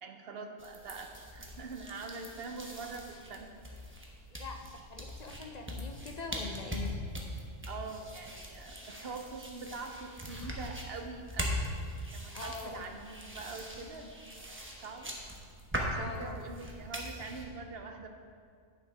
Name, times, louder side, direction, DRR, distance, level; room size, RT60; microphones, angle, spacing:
voice 1, 0.0-3.5 7.7-11.8 12.1-15.2 15.8-18.1, right 4 dB, 55° right, 5 dB, 0.8 m, -44 dB
sound 1, 0.6-17.4, equal, 10° right, 0.9 m, -41 dB
voice 2, 4.3-7.0 12.3-13.0 15.9-16.4, left 4 dB, 50° left, 4 dB, 0.5 m, -43 dB
8.9 x 7.0 x 4.9 m, 2.3 s
omnidirectional pair, 1.3 m